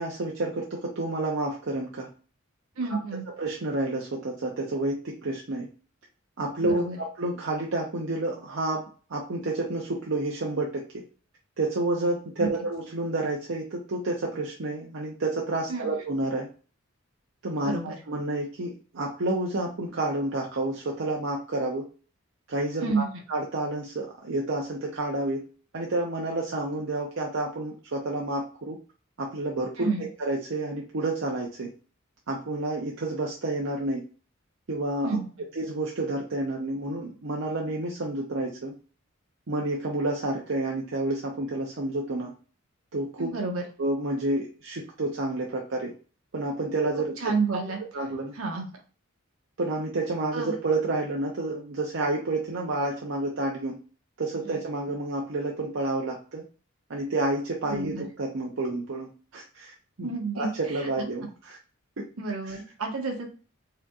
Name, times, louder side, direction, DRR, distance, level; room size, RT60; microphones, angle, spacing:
voice 1, 0.0-2.1 2.9-3.0 3.4-5.7 6.4-8.8 9.1-10.8 11.6-16.5 17.4-17.7 18.1-21.9 22.5-25.5 25.7-28.8 29.2-31.7 32.3-34.0 34.7-35.2 35.6-38.7 39.5-42.3 42.9-43.3 43.8-45.9 46.3-47.6 47.9-48.3 49.6-53.8 54.2-56.4 56.9-59.7 60.0-60.1 60.4-61.6 62.0-62.1 62.4-62.6, right 2 dB, 60° right, -2 dB, 0.7 m, -29 dB
voice 2, 2.8-3.3 6.6-7.0 12.4-12.5 15.7-15.9 17.6-18.0 22.8-23.2 29.8-30.1 35.0-35.3 43.2-43.6 47.2-47.8 48.3-48.7 50.3-50.5 54.4-54.6 57.6-58.0 60.0-61.1 62.2-63.3, right 4 dB, 75° right, 1 dB, 1.2 m, -30 dB
4.9 x 2.8 x 2.3 m, 0.38 s
head